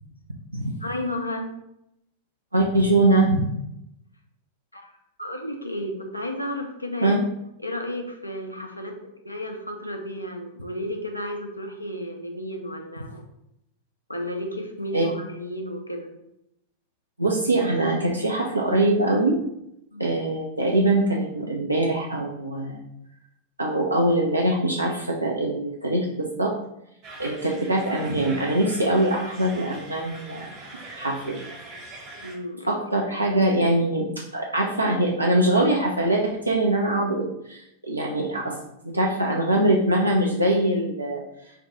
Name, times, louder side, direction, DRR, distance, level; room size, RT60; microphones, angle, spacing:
voice 1, 0.8-1.5 4.7-4.9 5.2-7.2 7.6-13.2 14.1-16.1 19.9-20.0 27.2-27.4 32.2-32.8, left 1 dB, 85° left, 3 dB, 0.5 m, -33 dB
voice 2, 2.5-3.4 7.0-7.2 14.9-15.0 17.2-19.4 20.0-22.8 23.6-26.5 27.2-30.6 31.0-31.4 32.7-34.1 34.3-38.6 38.8-41.2, right 1 dB, 85° right, -1 dB, 0.4 m, -23 dB
sound 1, 27.0-32.4, right 2 dB, 40° right, 0.9 m, -42 dB
4.9 x 2.2 x 2.9 m, 0.82 s
figure-of-eight pair, 90°, 0 cm